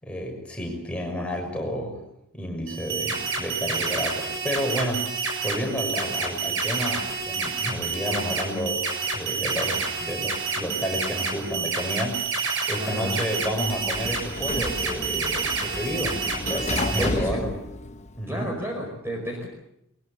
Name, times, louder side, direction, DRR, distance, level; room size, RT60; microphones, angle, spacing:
voice 1, 0.0-2.0 2.3-8.9 9.1-17.5 18.2-18.5, equal, 5° left, 1 dB, 6.4 m, -31 dB
sound 1, 2.7-17.1, right 4 dB, 60° right, 6.7 m, -29 dB
voice 2, 12.8-13.2 16.9-17.5 18.3-19.5, equal, 10° right, 0 dB, 5.1 m, -31 dB
Sliding door, 13.3-18.5, left 2 dB, 30° left, 1.0 m, -33 dB
23.0 x 22.5 x 7.2 m, 0.76 s
head